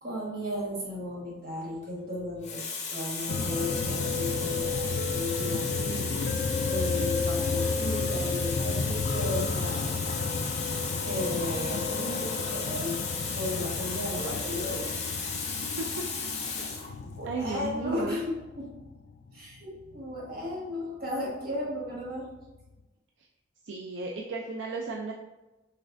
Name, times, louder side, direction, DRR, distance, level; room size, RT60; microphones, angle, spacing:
voice 1, 0.0-6.2 6.6-9.9 11.0-13.0 13.3-14.9 17.0-18.7 19.3-22.3, left 1 dB, 50° right, -4 dB, 1.5 m, -35 dB
Water tap faucet, 1.6-1.9 2.4-16.9 17.8-18.0, left 4 dB, 35° left, 0.8 m, -34 dB
sound 1, 3.3-20.5 22.2-22.3 22.6-22.7, left 4 dB, 55° left, 0.3 m, -32 dB
voice 2, 17.2-18.2 23.6-25.1, right 3 dB, 75° right, 0 dB, 0.4 m, -34 dB
5.8 x 3.3 x 2.5 m, 1.1 s
head